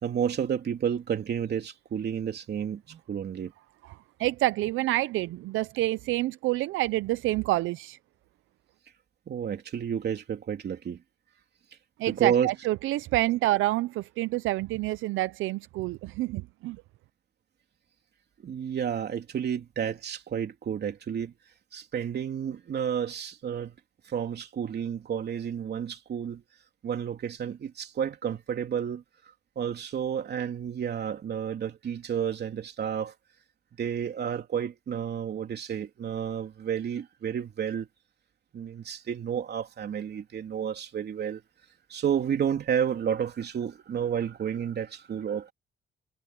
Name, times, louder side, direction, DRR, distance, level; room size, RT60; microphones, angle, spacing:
voice 1, 0.0-3.5 9.3-11.0 12.0-12.7 13.3-13.4 18.4-21.3 21.7-23.8 24.0-26.4 26.8-29.0 29.5-33.1 33.8-37.9 38.5-41.4 41.9-45.5, right 8 dB, 55° right, 3.3 m, -31 dB
voice 2, 4.2-8.0 12.0-16.8, right 17 dB, 85° right, 0.5 m, -28 dB
cardioid pair, 90°, 20 cm